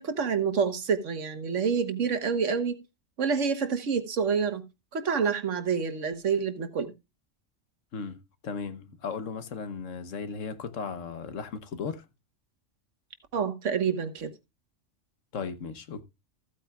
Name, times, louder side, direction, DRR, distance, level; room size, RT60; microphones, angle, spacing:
voice 1, 0.0-2.8 3.2-4.6 4.9-6.9 13.3-14.3, right 6 dB, 75° right, 1.5 m, -27 dB
voice 2, 8.4-12.0 15.3-16.0, left 5 dB, 85° left, 1.4 m, -36 dB
14.5 x 8.7 x 2.3 m
omnidirectional pair, 1.3 m